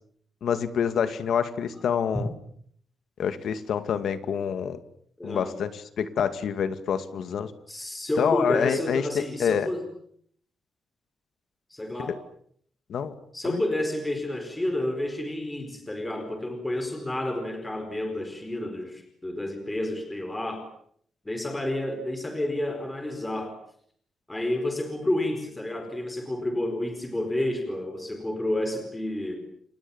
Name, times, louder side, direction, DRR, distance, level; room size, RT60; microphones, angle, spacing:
voice 1, 0.4-2.3 3.2-4.8 5.2-7.5 8.2-9.7 12.0-12.1 12.9-13.1 13.4-13.6, left 8 dB, 65° left, 11 dB, 2.2 m, -27 dB
voice 2, 5.2-5.6 7.7-9.8 11.7-12.2 13.3-20.7 21.2-23.6 24.3-29.4, left 1 dB, 10° left, 6 dB, 4.7 m, -30 dB
29.5 x 26.5 x 7.3 m, 0.65 s
wide cardioid pair, 175°, 0 cm